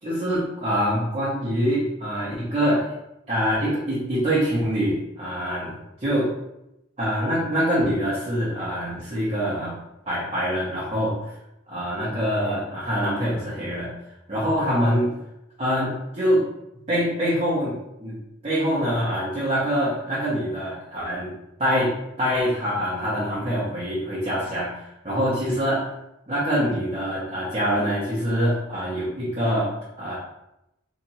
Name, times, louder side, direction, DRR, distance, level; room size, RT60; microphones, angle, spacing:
voice 1, 0.0-2.9 3.3-6.3 7.0-9.8 10.0-11.3 11.7-13.9 14.3-15.1 15.6-16.5 16.9-17.7 18.0-18.2 18.4-25.9 26.3-29.7 30.0-30.2, equal, 30° right, -9 dB, 1.0 m, -25 dB
2.8 x 2.6 x 4.2 m, 0.87 s
head